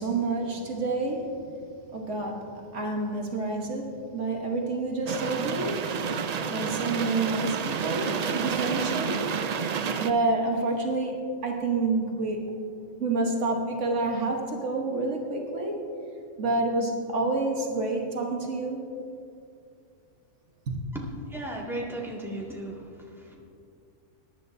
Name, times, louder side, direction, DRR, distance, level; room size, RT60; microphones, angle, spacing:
voice 1, 0.0-1.4 1.9-6.0 6.5-9.3 10.0-12.5 13.0-15.8 16.4-18.8 20.7-20.8, right 2 dB, 70° right, 1 dB, 1.5 m, -28 dB
sound 1, 5.1-10.1, right 6 dB, 90° right, 0.3 m, -30 dB
voice 2, 20.9-23.4, right 1 dB, ahead, -4 dB, 1.9 m, -36 dB
21.5 x 10.5 x 2.7 m, 2.5 s
omnidirectional pair, 1.3 m